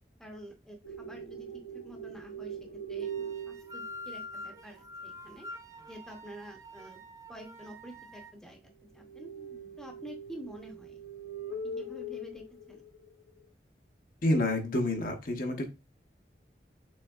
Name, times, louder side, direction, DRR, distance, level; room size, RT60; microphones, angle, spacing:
voice 1, 0.2-1.5 1.8-2.6 2.9-5.5 5.9-7.0 7.3-9.3 9.8-11.0 11.6-12.8, right 1 dB, 5° left, 1 dB, 0.8 m, -48 dB
sound 1, 0.8-4.6 9.0-13.4, right 3 dB, 80° left, 0.9 m, -41 dB
sound 2, 3.0-8.3, left 2 dB, 20° right, 0.3 m, -46 dB
voice 2, 14.2-15.7, left 1 dB, 50° left, 3 dB, 0.9 m, -28 dB
6.2 x 3.4 x 2.3 m, 0.26 s
head